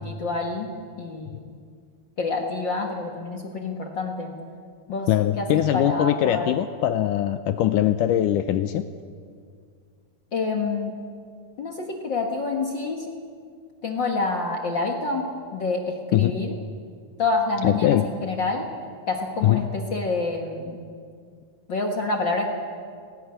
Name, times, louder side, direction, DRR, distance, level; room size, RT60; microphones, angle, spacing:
voice 1, 0.0-0.7 1.0-1.5 2.2-4.3 4.9-5.1 5.4-6.5 10.3-10.9 11.6-13.1 13.8-16.6 17.2-18.7 19.1-20.8 21.7-22.5, left 3 dB, 65° left, 1 dB, 1.1 m, -27 dB
voice 2, 5.1-8.8 16.1-16.3 17.6-18.1 19.4-19.7, left 12 dB, 85° left, 9 dB, 1.8 m, -21 dB
18.5 x 18.0 x 9.8 m, 2.1 s
omnidirectional pair, 4.5 m